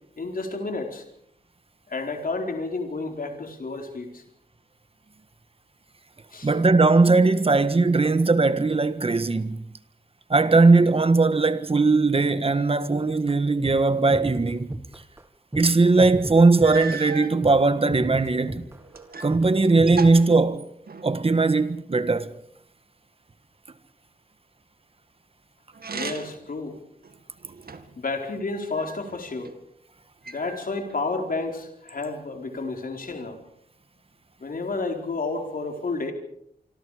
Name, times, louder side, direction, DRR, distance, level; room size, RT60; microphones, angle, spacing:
voice 1, 0.2-1.0 1.9-4.2 6.3-6.5 25.9-26.8 28.0-29.5 30.2-33.4 34.4-36.1, left 3 dB, 55° left, 4.4 m, -31 dB
voice 2, 6.4-9.6 10.3-14.7 15.5-18.6 19.2-20.6 21.0-22.3, right 3 dB, 35° right, 1.5 m, -19 dB
sound 1, 13.3-13.4 13.6-13.8 14.1-15.2 15.5-15.7 16.0-17.1 17.4-17.6 17.9-19.0 19.3-19.5 19.8-20.4, right 1 dB, 15° right, 1.5 m, -34 dB
sound 2, 16.6-17.4 18.2-19.4 19.6-21.2 25.7-26.5 27.0-28.0 28.8-29.6 30.2-31.0, right 4 dB, 65° right, 2.2 m, -37 dB
26.0 x 26.0 x 5.0 m
wide cardioid pair, 140°, 17 cm